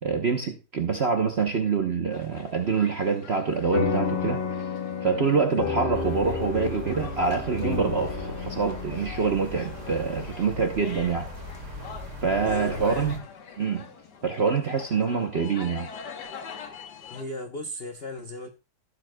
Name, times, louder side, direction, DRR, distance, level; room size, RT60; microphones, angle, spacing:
voice 1, 0.0-4.4 5.0-11.3 12.2-13.1 13.6-13.9 14.2-15.9, right 5 dB, 55° right, 0.7 m, -26 dB
sound 1, 2.1-17.2, left 6 dB, 60° left, 1.5 m, -45 dB
sound 2, 3.7-12.5, left 5 dB, 40° left, 0.9 m, -32 dB
sound 3, 5.9-13.2, left 1 dB, 35° right, 2.0 m, -40 dB
voice 2, 12.4-13.2 17.1-18.5, left 2 dB, 75° left, 0.5 m, -36 dB
15.5 x 7.7 x 2.2 m
omnidirectional pair, 2.3 m